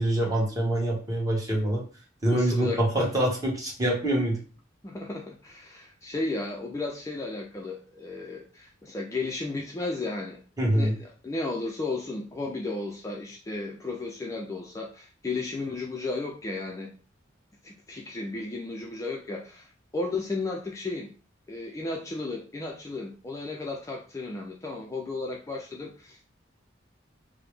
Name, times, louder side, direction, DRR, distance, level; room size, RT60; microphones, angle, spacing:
voice 1, 0.0-1.8 2.2-4.4 10.6-11.0, right 1 dB, 20° right, -2 dB, 1.1 m, -25 dB
voice 2, 2.3-3.1 4.8-10.4 10.7-16.9 17.6-21.1 21.5-26.3, left 3 dB, 15° left, 0 dB, 0.4 m, -34 dB
4.8 x 2.0 x 3.1 m, 0.38 s
head